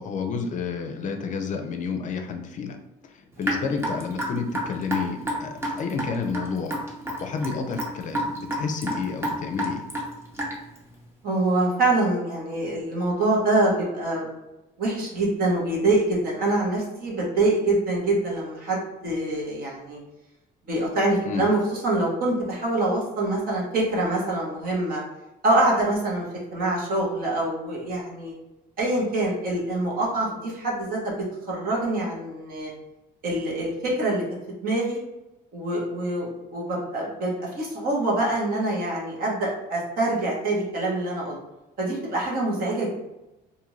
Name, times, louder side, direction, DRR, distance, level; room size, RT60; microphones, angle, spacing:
voice 1, 0.0-2.8 3.4-6.8 7.2-9.8 21.3-21.4, left 5 dB, 50° left, 5 dB, 0.5 m, -30 dB
Raindrop / Drip, 3.4-10.8, equal, 15° right, 0.7 m, -29 dB
voice 2, 11.2-14.3 14.8-20.0 20.7-25.0 25.4-26.2 26.5-28.3 28.8-32.7 33.2-34.2 34.6-35.0 35.5-41.4 41.8-42.9, right 2 dB, 60° right, -3 dB, 1.2 m, -25 dB
2.6 x 2.5 x 3.1 m, 0.96 s
cardioid pair, 110°, 17 cm